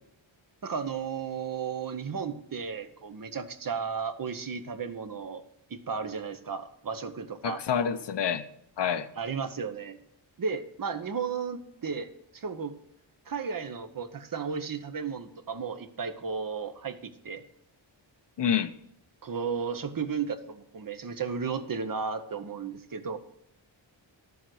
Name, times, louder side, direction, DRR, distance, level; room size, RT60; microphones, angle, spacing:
voice 1, 0.6-5.4 5.7-7.6 9.2-10.0 10.4-12.7 13.3-17.4 19.2-23.2, right 5 dB, 45° right, 0.9 m, -34 dB
voice 2, 7.4-8.4 8.8-9.1 18.4-18.7, left 8 dB, 60° left, 0.7 m, -27 dB
11.5 x 7.2 x 6.2 m
wide cardioid pair, 115°, 47 cm